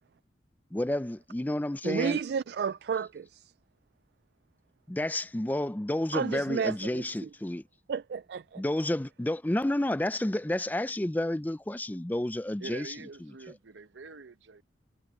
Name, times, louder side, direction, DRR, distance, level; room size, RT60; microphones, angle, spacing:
voice 1, 0.7-2.2 4.9-7.6 8.6-12.9, left 1 dB, 10° left, 0.4 m, -30 dB
voice 2, 1.8-3.5 6.1-7.3 7.9-8.6, right 6 dB, 60° right, 0.3 m, -32 dB
voice 3, 12.6-14.6, right 4 dB, 85° right, 0.9 m, -45 dB
head